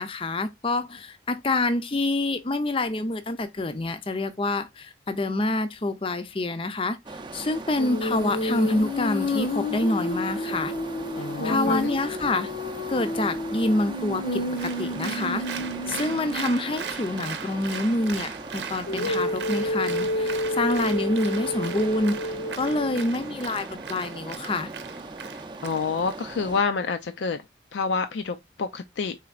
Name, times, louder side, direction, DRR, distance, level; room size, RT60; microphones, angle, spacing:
voice 1, 0.0-10.7 11.4-12.5 12.9-15.4 15.9-22.1 22.5-24.7, left 2 dB, 30° left, 0.5 m, -27 dB
sound 1, 7.1-26.6, right 2 dB, 25° right, 0.5 m, -39 dB
Female singing, 7.8-16.7 18.9-23.1, left 1 dB, 65° left, 0.9 m, -30 dB
voice 2, 11.2-11.8 25.6-27.4 27.7-29.2, left 5 dB, 85° left, 0.4 m, -28 dB
Applause, 14.6-26.2, right 6 dB, 75° right, 0.7 m, -38 dB
4.3 x 3.9 x 2.3 m
head